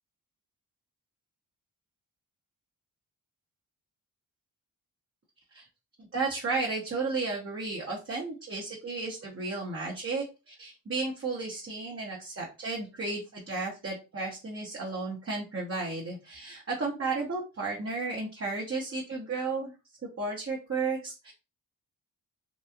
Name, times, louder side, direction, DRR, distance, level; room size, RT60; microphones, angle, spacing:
voice 1, 6.1-19.7 20.0-21.3, right 3 dB, 30° right, -3 dB, 0.9 m, -33 dB
3.0 x 2.3 x 2.3 m, 0.28 s
supercardioid pair, 45°, 43 cm